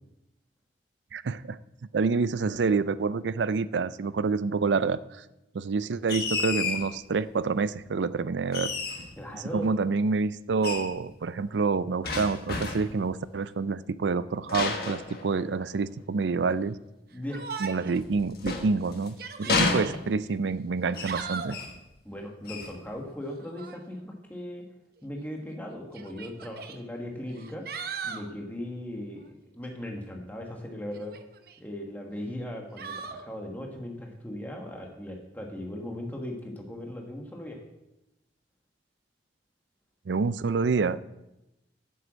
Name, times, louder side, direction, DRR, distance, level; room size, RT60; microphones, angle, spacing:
voice 1, 1.1-1.6 1.9-5.2 5.5-8.7 9.3-16.8 17.6-21.6 40.1-41.0, right 4 dB, 90° right, 16 dB, 0.5 m, -27 dB
sound 1, 6.1-6.9 8.5-9.2 10.6-10.9 12.0-13.0 14.5-15.8 17.9-19.1 19.5-20.4 20.9-21.2 21.5-21.8 22.4-22.8, left 4 dB, 60° left, 1.4 m, -31 dB
voice 2, 9.2-9.7 17.1-17.5 19.4-19.6 22.0-24.6 25.0-27.6 28.0-31.1 31.6-37.6, left 1 dB, 10° left, 1 dB, 1.4 m, -38 dB
Yell, 17.3-18.0 18.4-18.5 19.1-20.0 20.8-21.6 23.4-23.8 25.0-25.1 25.9-26.8 27.3-28.3 30.9-31.6 32.8-33.2, right 5 dB, 55° right, 0.8 m, -38 dB
7.9 x 7.8 x 7.4 m, 0.92 s
head